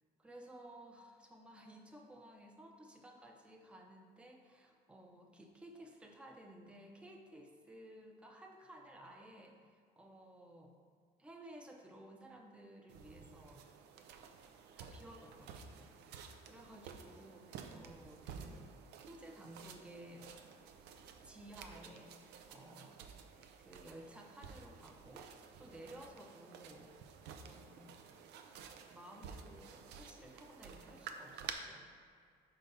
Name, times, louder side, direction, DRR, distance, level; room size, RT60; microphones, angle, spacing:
voice 1, 0.2-10.7 11.2-13.7 14.8-18.7 19.1-20.3 21.2-23.0 23.6-27.0 27.4-28.0 28.9-31.9, right 1 dB, 5° right, 1 dB, 0.6 m, -56 dB
sound 1, 12.9-31.5, right 7 dB, 85° right, 0.5 m, -52 dB
4.6 x 3.9 x 5.5 m, 2.1 s
cardioid pair, 110°, 17 cm